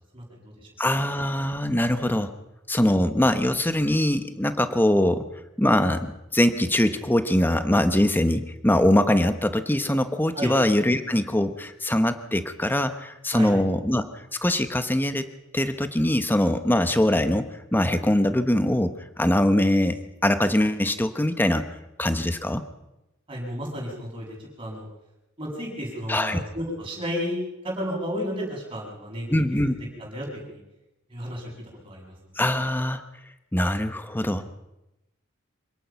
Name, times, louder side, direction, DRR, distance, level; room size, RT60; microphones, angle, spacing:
voice 1, 0.1-0.5 10.3-10.5 13.3-13.5 23.3-24.9 25.4-27.4 27.6-29.3 30.0-30.6 31.1-31.5 31.8-32.1, equal, 25° right, -3 dB, 7.3 m, -32 dB
voice 2, 0.8-2.3 2.7-5.3 5.6-15.3 15.5-21.7 22.0-22.6 26.1-26.4 29.3-29.7 32.4-33.0 33.5-34.4, left 1 dB, 10° left, 9 dB, 1.0 m, -22 dB
26.0 x 17.5 x 5.9 m, 0.94 s
head